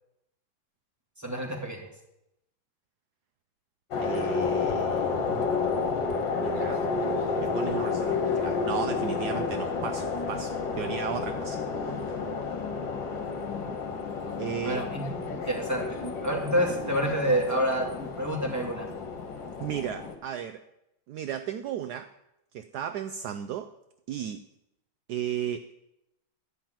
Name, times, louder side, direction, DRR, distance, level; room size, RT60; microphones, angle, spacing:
voice 1, 1.2-1.8 14.6-15.0 15.3-16.0 16.2-18.9, right 1 dB, 10° right, -1 dB, 2.5 m, -28 dB
sound 1, 3.9-20.1, left 4 dB, 65° left, 2.0 m, -30 dB
voice 2, 4.0-5.7 6.3-6.8 7.4-12.0 14.4-14.8 19.6-20.6 21.1-22.1 22.5-23.7 24.1-24.4 25.1-25.7, right 9 dB, 75° right, 8 dB, 0.9 m, -35 dB
12.5 x 5.9 x 8.9 m, 0.86 s
omnidirectional pair, 2.2 m